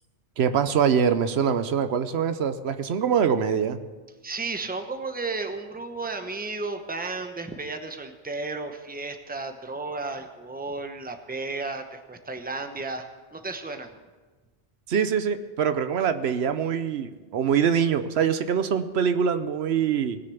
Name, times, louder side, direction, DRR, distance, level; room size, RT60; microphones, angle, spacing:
voice 1, 0.4-3.8 14.9-20.2, right 7 dB, 75° right, 11 dB, 1.0 m, -24 dB
voice 2, 4.2-13.0 13.3-13.9, right 3 dB, 10° right, 6 dB, 0.9 m, -33 dB
19.0 x 6.7 x 7.0 m, 1.3 s
omnidirectional pair, 1.1 m